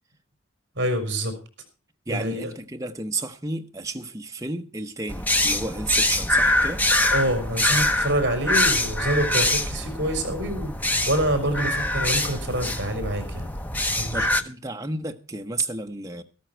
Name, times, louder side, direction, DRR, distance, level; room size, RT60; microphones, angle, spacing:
voice 1, 0.7-1.3 2.1-2.5 7.1-10.7 11.1-13.5 13.9-14.3, right 1 dB, 55° right, 4.6 m, -26 dB
voice 2, 2.1-6.8 14.1-16.2, right 3 dB, 15° right, 1.0 m, -32 dB
sound 1, 5.1-14.4, left 1 dB, 10° left, 0.7 m, -24 dB
13.5 x 13.0 x 4.5 m
head